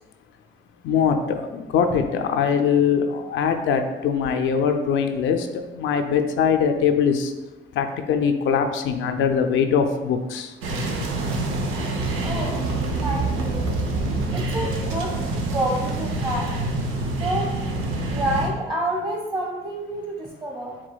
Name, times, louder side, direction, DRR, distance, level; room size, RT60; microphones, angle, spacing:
voice 1, 0.8-5.5 5.7-7.3 7.7-10.5, left 7 dB, 80° left, 6 dB, 0.4 m, -22 dB
sound 1, 10.6-18.5, right 2 dB, 90° right, 0.6 m, -26 dB
voice 2, 12.2-12.6 12.9-13.6 14.3-15.1 15.5-16.5 17.1-17.5 18.1-20.8, right 1 dB, 25° right, -1 dB, 1.4 m, -28 dB
4.9 x 3.5 x 2.2 m, 1.1 s
cardioid pair, 90°, 20 cm